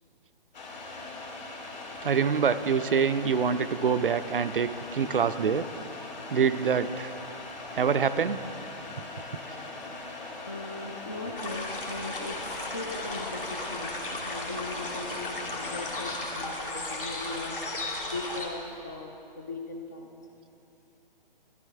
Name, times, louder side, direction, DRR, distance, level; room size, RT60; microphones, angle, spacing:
sound 1, 0.5-16.3, left 2 dB, 50° left, 1.9 m, -41 dB
voice 1, 2.0-5.7 6.3-7.1 7.7-8.4, right 6 dB, 65° right, 12 dB, 0.5 m, -25 dB
voice 2, 10.5-17.6 18.1-20.1, left 2 dB, 20° left, 3 dB, 0.4 m, -39 dB
sound 2, 11.4-18.5, left 2 dB, 65° left, 1.7 m, -35 dB
13.5 x 11.5 x 3.4 m, 2.7 s
figure-of-eight pair, 135°, 29 cm